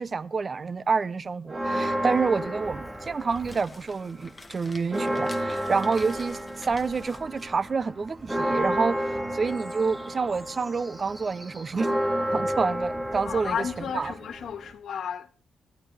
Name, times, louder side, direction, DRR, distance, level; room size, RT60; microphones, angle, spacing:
voice 1, 0.0-9.0 9.3-11.9 12.3-13.7 13.9-14.1, right 4 dB, 35° right, 0.7 m, -28 dB
Church bell, 1.5-3.9 4.2-4.3 4.7-14.7, equal, 10° right, 2.1 m, -31 dB
sound 1, 3.0-8.7, left 2 dB, 15° left, 2.0 m, -49 dB
voice 2, 13.2-15.4, left 8 dB, 70° left, 1.6 m, -33 dB
25.5 x 12.0 x 3.3 m
cardioid pair, 125°, 0 cm